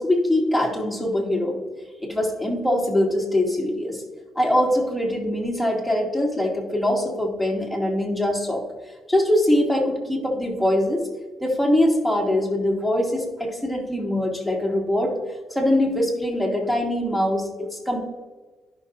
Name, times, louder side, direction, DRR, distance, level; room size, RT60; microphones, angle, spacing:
voice 1, 0.0-1.6 2.0-4.0 4.3-8.6 9.1-11.1 11.4-15.1 15.5-18.0, left 1 dB, ahead, -1 dB, 2.5 m, -23 dB
14.5 x 6.3 x 2.6 m, 1.3 s
cardioid pair, 90°, 0 cm